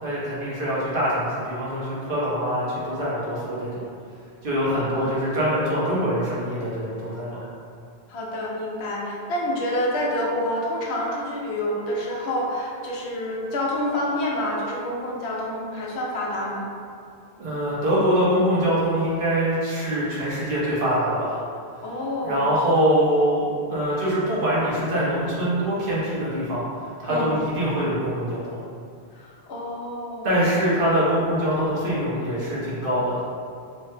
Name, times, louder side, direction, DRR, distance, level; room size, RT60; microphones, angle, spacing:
voice 1, 0.0-3.8 4.4-7.4 17.4-21.4 22.2-26.7 27.0-28.6 30.2-33.2, equal, 55° right, -8 dB, 1.0 m, -24 dB
voice 2, 4.7-5.1 8.1-16.7 21.8-22.5 27.1-27.3 29.2-30.3, left 1 dB, 80° left, -3 dB, 0.9 m, -28 dB
3.1 x 2.1 x 3.2 m, 2.3 s
omnidirectional pair, 1.1 m